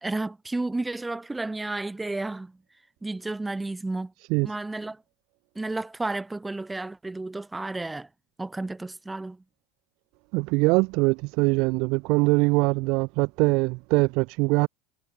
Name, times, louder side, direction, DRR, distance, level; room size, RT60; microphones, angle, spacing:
voice 1, 0.0-2.6 3.0-4.1 4.4-5.0 5.5-8.1 8.4-9.4, right 2 dB, 10° right, 1.2 m, -32 dB
voice 2, 10.3-14.7, right 27 dB, 60° right, 0.6 m, -22 dB
hypercardioid pair, 90°, 0 cm